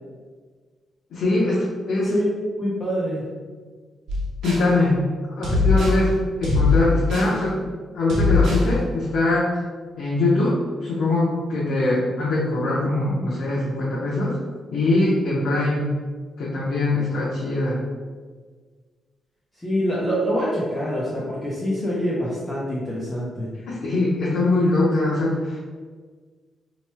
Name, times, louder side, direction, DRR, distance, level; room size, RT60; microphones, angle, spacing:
voice 1, 1.1-2.1 4.4-5.0 5.4-7.6 7.9-9.5 10.0-14.3 14.7-15.8 16.4-17.8 23.7-25.6, left 2 dB, 75° left, -7 dB, 0.7 m, -22 dB
voice 2, 2.6-3.2 19.6-23.5, equal, 10° left, -7 dB, 0.5 m, -25 dB
sound 1, 4.1-4.7 5.4-6.0 6.4-7.4 8.1-8.7, left 3 dB, 85° right, 0.8 m, -21 dB
3.0 x 2.2 x 4.2 m, 1.5 s
wide cardioid pair, 180°, 0 cm